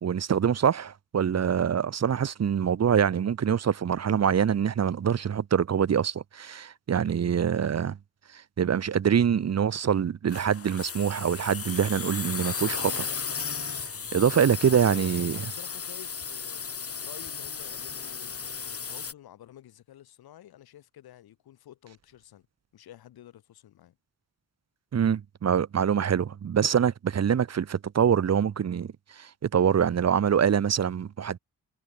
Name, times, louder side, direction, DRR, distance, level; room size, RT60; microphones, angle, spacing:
voice 1, 0.0-8.0 8.6-13.1 13.6-13.7 14.1-15.4 24.9-31.4, right 8 dB, 45° right, 1.3 m, -25 dB
sound 1, 10.3-19.1, left 6 dB, 40° left, 4.0 m, -35 dB
voice 2, 14.9-16.6 17.0-22.5 22.7-24.0, left 12 dB, 90° left, 6.6 m, -50 dB
cardioid pair, 105°, 36 cm